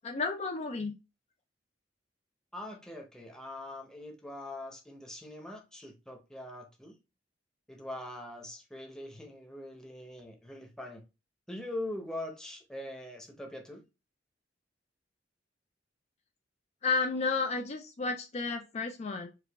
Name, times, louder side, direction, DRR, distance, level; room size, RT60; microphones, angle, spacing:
voice 1, 0.0-0.9 16.8-19.3, left 4 dB, 35° left, 0.4 m, -32 dB
voice 2, 2.5-7.0 7.7-11.0 11.5-13.8, left 1 dB, 5° left, 0.8 m, -42 dB
4.8 x 2.4 x 3.4 m
head